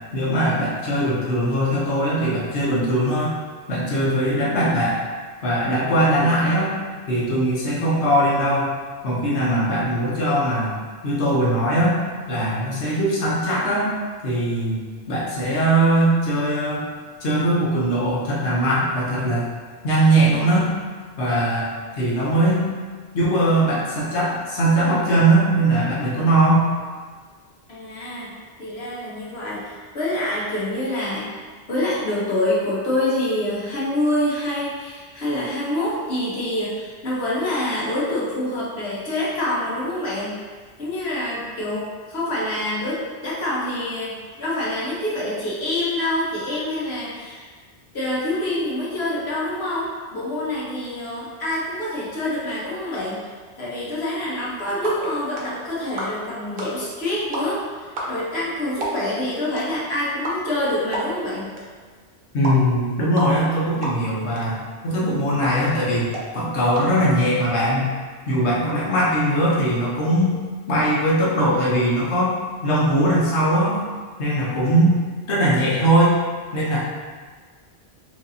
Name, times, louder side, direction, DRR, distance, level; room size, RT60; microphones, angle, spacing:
voice 1, 0.1-3.4 3.7-5.0 5.4-6.8 7.1-8.7 9.0-10.8 11.0-12.0 12.3-13.9 14.2-14.8 15.1-16.8 17.2-19.5 19.8-20.7 21.2-21.7 22.0-22.6 23.1-26.7 62.3-66.1 66.3-67.9 68.3-70.3 70.7-72.3 72.6-73.8 74.2-75.0 75.3-76.2 76.5-76.8, right 1 dB, 85° left, -6 dB, 1.2 m, -20 dB
voice 2, 27.7-28.3 28.6-40.3 40.8-47.5 47.9-53.2 53.6-61.5, left 1 dB, 70° left, -7 dB, 1.3 m, -26 dB
sound 1, 54.4-67.7, right 1 dB, 60° right, 0.9 m, -35 dB
4.6 x 2.8 x 2.7 m, 1.5 s
omnidirectional pair, 1.1 m